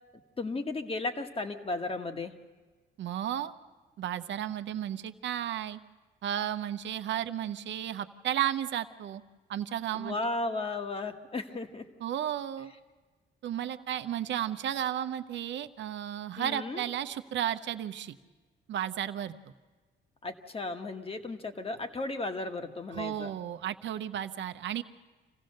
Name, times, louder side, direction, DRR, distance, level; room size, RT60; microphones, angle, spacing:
voice 1, 0.4-2.3 9.9-11.8 16.4-16.8 20.2-23.3, left 2 dB, 30° left, 6 dB, 1.5 m, -35 dB
voice 2, 3.0-3.5 4.0-5.8 6.2-9.2 9.5-10.2 12.0-12.7 13.4-18.2 18.7-19.3 22.9-24.8, right 11 dB, 65° right, 10 dB, 0.8 m, -33 dB
26.0 x 15.5 x 6.6 m, 1.3 s
cardioid pair, 90°, 20 cm